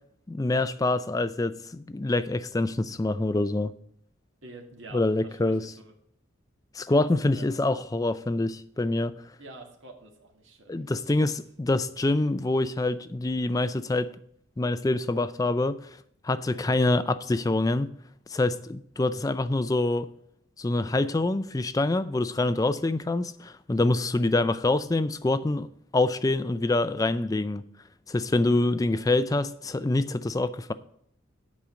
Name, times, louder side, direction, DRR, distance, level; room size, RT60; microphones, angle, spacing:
voice 1, 0.3-3.7 4.9-5.7 6.7-9.2 10.7-14.1 14.6-15.8 16.2-17.9 18.3-20.1 20.6-25.7 25.9-27.7 28.1-30.7, left 2 dB, 15° left, 0.3 m, -25 dB
voice 2, 4.4-5.9 7.0-7.5 9.4-11.3 28.5-28.6 29.1-29.2, right 2 dB, 70° right, 1.8 m, -48 dB
8.6 x 5.1 x 7.4 m
head